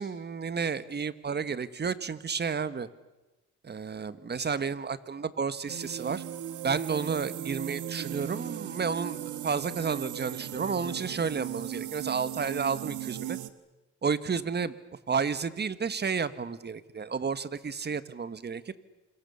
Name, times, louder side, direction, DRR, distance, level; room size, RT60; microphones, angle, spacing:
voice 1, 0.0-2.9 3.6-6.2 6.6-13.4 14.0-14.7 15.1-18.6, right 5 dB, 35° right, 14 dB, 1.5 m, -31 dB
sound 1, 5.7-13.5, right 11 dB, 75° right, 1.6 m, -37 dB
27.5 x 26.0 x 7.0 m, 1.1 s
cardioid pair, 90°, 30 cm